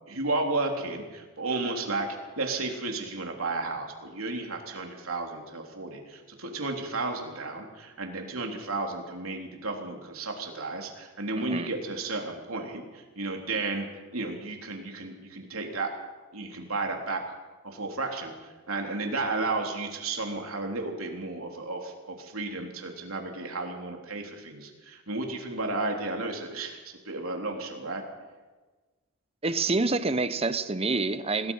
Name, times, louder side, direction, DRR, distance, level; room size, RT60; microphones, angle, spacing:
voice 1, 0.1-2.1 2.4-13.9 14.1-15.9 16.3-17.2 17.6-28.0, right 3 dB, 80° right, 2 dB, 3.6 m, -33 dB
voice 2, 11.4-11.7 29.4-31.5, right 3 dB, 30° right, 12 dB, 0.9 m, -27 dB
27.0 x 19.0 x 5.6 m, 1.3 s
head